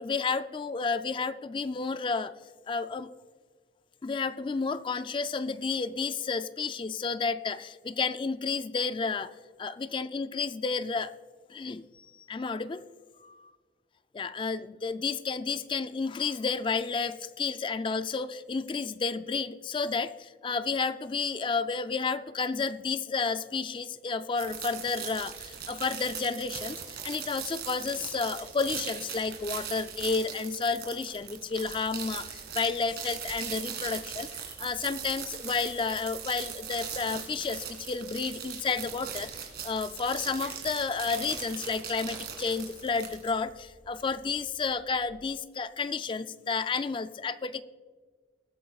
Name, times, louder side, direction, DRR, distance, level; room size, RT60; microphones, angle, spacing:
voice 1, 0.0-2.3 2.7-3.1 4.0-9.3 9.6-11.1 11.5-11.8 12.3-12.8 13.2-13.4 14.1-20.1 20.4-34.3 34.6-47.6, left 4 dB, 30° left, 12 dB, 0.3 m, -31 dB
sound 1, 24.4-43.3, right 8 dB, 65° right, 2.2 m, -40 dB
sound 2, 31.6-45.1, equal, 10° left, 1.5 m, -59 dB
19.0 x 8.9 x 2.3 m, 1.5 s
head